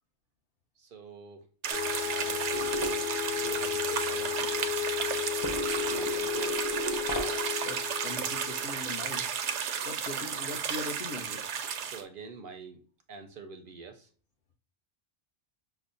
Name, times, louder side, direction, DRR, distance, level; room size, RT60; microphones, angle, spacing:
voice 1, 0.8-1.4 2.0-4.7 5.9-6.7 11.8-12.8 13.1-14.1, right 5 dB, 60° right, 0.6 m, -46 dB
sound 1, 1.6-12.0, right 7 dB, 90° right, 0.9 m, -33 dB
sound 2, 1.7-9.4, left 13 dB, 85° left, 0.9 m, -34 dB
sound 3, 2.5-3.2 5.4-7.6, right 2 dB, 30° left, 0.3 m, -36 dB
voice 2, 7.6-9.3 9.8-11.4, left 3 dB, 60° left, 0.9 m, -40 dB
5.7 x 2.0 x 2.4 m
omnidirectional pair, 1.1 m